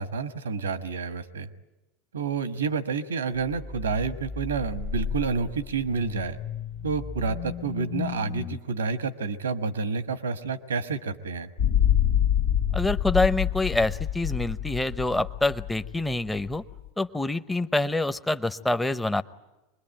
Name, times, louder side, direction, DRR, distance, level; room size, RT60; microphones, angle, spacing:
voice 1, 0.0-1.5 2.1-6.4 6.8-11.5, right 5 dB, 85° right, 11 dB, 1.3 m, -29 dB
sound 1, 3.3-8.6, left 6 dB, 35° left, 0.9 m, -35 dB
sound 2, 11.6-16.8, left 10 dB, 75° left, 1.7 m, -25 dB
voice 2, 12.7-16.6 17.0-19.2, left 2 dB, 10° left, 10 dB, 0.9 m, -26 dB
24.5 x 21.0 x 9.0 m, 1.0 s
hypercardioid pair, 85°, 0 cm